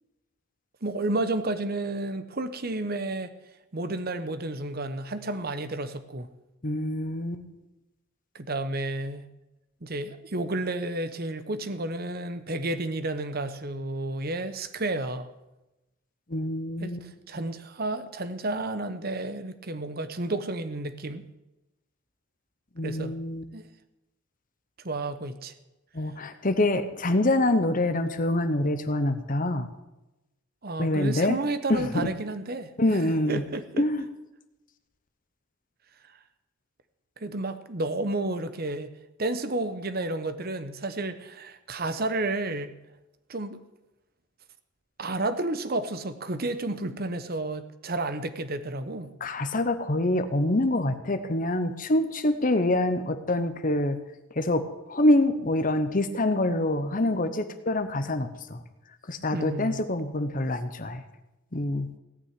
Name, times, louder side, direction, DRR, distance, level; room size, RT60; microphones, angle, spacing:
voice 1, 0.8-3.3 3.7-6.3 8.3-9.3 9.8-15.3 16.8-21.3 22.8-23.2 23.5-23.6 24.8-25.5 30.6-33.0 33.3-33.8 37.2-38.9 39.2-42.7 43.3-43.6 45.0-49.1 59.3-59.8, right 2 dB, 45° right, 11 dB, 1.0 m, -31 dB
voice 2, 6.6-7.4 16.3-17.0 22.8-23.4 25.9-29.7 30.8-31.4 31.7-32.1 32.8-33.4 33.8-34.0 49.2-54.0 54.3-58.6 59.1-61.0 61.5-61.9, left 1 dB, 40° left, 10 dB, 1.0 m, -25 dB
17.5 x 6.2 x 9.7 m, 0.98 s
head